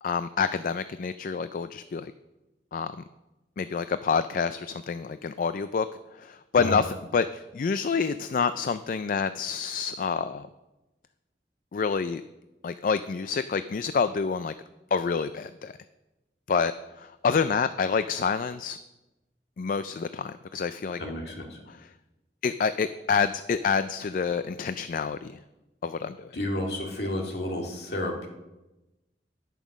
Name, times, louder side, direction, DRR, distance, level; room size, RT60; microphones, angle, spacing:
voice 1, 0.0-2.1 2.7-3.0 3.6-5.9 6.2-10.5 11.7-12.2 12.6-14.5 14.9-15.8 16.5-18.8 19.6-21.0 21.7-21.9 22.4-25.3 25.8-26.3, left 5 dB, 50° left, 12 dB, 0.3 m, -28 dB
voice 2, 21.0-21.6 26.3-28.3, left 1 dB, 65° left, 1 dB, 2.1 m, -31 dB
10.5 x 9.1 x 6.1 m, 1.0 s
head